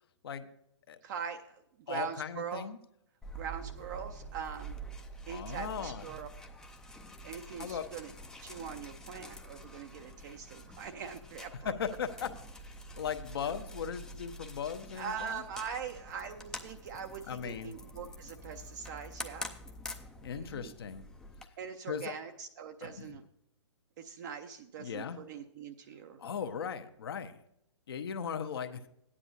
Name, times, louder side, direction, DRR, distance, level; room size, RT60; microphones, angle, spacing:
voice 1, 1.0-2.7 3.4-4.8 5.3-6.3 7.2-8.1 8.4-11.7 14.9-19.5 20.3-20.7 21.6-23.2 24.0-26.2, right 7 dB, 40° right, 5 dB, 0.6 m, -42 dB
voice 2, 1.9-2.8 5.3-6.0 7.6-7.8 11.6-12.3 13.0-15.4 17.3-17.8 20.2-21.1 21.9-22.1 22.8-23.2 24.8-25.2 26.2-27.4 27.9-28.9, left 7 dB, 55° left, 9 dB, 0.9 m, -38 dB
sound 1, 3.2-21.5, right 1 dB, 5° left, 0.5 m, -47 dB
14.0 x 9.8 x 2.7 m, 0.76 s
figure-of-eight pair, 120°, 15 cm